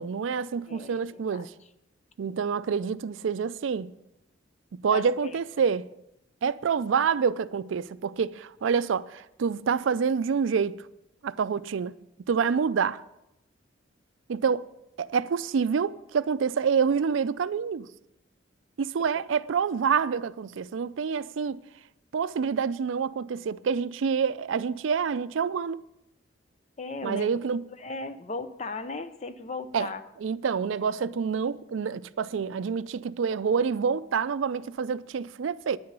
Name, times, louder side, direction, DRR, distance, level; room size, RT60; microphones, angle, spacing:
voice 1, 0.0-1.5 2.2-3.9 4.7-5.9 6.4-10.8 11.2-12.0 12.3-13.0 14.3-14.6 15.0-17.9 18.8-21.6 22.1-25.8 27.0-27.6 29.7-29.9 30.2-35.8, right 6 dB, 75° right, 0.4 m, -27 dB
voice 2, 0.7-1.4 4.9-5.3 26.8-27.3 27.8-30.0, left 3 dB, 35° left, 0.5 m, -36 dB
9.7 x 9.6 x 5.4 m
head